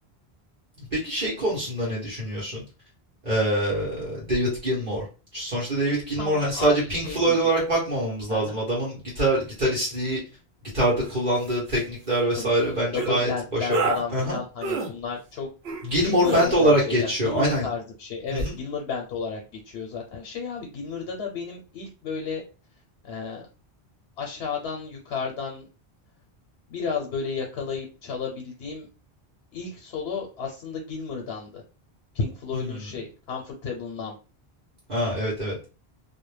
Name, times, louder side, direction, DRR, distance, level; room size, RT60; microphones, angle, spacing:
voice 1, 0.9-2.6 3.2-5.0 5.3-10.2 10.7-13.3 13.6-13.8 14.1-14.4 15.8-17.7 18.3-18.5 32.5-32.8 34.9-35.6, right 1 dB, 50° right, -6 dB, 1.0 m, -24 dB
voice 2, 6.2-7.4 8.3-8.6 12.4-15.5 16.0-22.4 23.0-23.4 24.2-25.7 26.7-28.9 29.5-31.6 32.1-34.2, left 5 dB, 85° left, 1 dB, 0.8 m, -32 dB
sound 1, 11.0-11.2 11.5-11.8 12.9-13.1 13.7-14.0 14.6-14.9 15.6-15.9 16.2-16.4, right 4 dB, 75° right, 0.9 m, -28 dB
2.2 x 2.1 x 3.1 m, 0.34 s
omnidirectional pair, 1.1 m